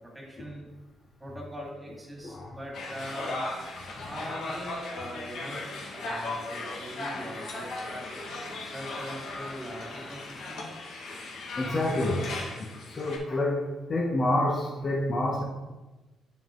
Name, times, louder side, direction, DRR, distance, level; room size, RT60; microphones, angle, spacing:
voice 1, 0.1-0.6 1.2-3.4 4.0-5.6 5.9-8.0 8.6-10.7, equal, 15° right, -2 dB, 2.6 m, -41 dB
sound 1, 2.7-13.2, left 2 dB, 70° left, 1.7 m, -37 dB
voice 2, 11.6-12.3 12.6-12.7 13.0-15.4, left 1 dB, 40° left, -2 dB, 1.1 m, -28 dB
7.5 x 5.5 x 3.8 m, 1.1 s
cardioid pair, 90°, 0 cm